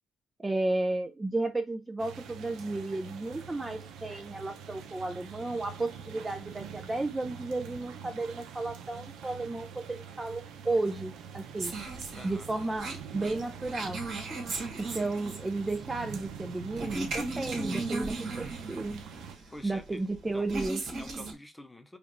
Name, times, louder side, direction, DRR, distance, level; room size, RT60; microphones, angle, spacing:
voice 1, 0.4-11.7 12.2-14.0 14.7-19.0 19.6-20.8, right 2 dB, 20° right, 0.5 m, -33 dB
sound 1, 2.0-19.4, right 7 dB, 85° right, 0.7 m, -45 dB
sound 2, 11.6-21.3, right 2 dB, 65° right, 1.6 m, -37 dB
voice 2, 12.1-12.5 19.5-20.0 20.3-20.7 21.0-22.0, left 1 dB, 10° left, 0.8 m, -47 dB
5.0 x 2.5 x 3.0 m
cardioid pair, 90°, 0 cm